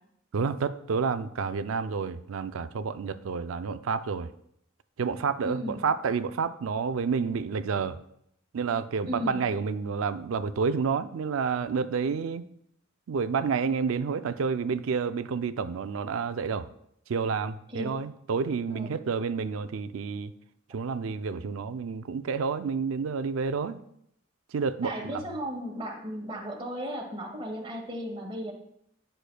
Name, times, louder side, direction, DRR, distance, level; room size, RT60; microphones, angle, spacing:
voice 1, 0.3-4.3 5.0-8.0 8.5-12.4 13.1-16.7 17.1-20.3 20.7-23.8 24.5-24.9, right 5 dB, 75° right, 12 dB, 0.4 m, -29 dB
voice 2, 5.4-5.8 9.1-9.4 17.7-17.9 18.7-18.9 24.8-28.5, equal, 25° right, -1 dB, 1.3 m, -35 dB
9.9 x 6.5 x 2.2 m, 0.72 s
head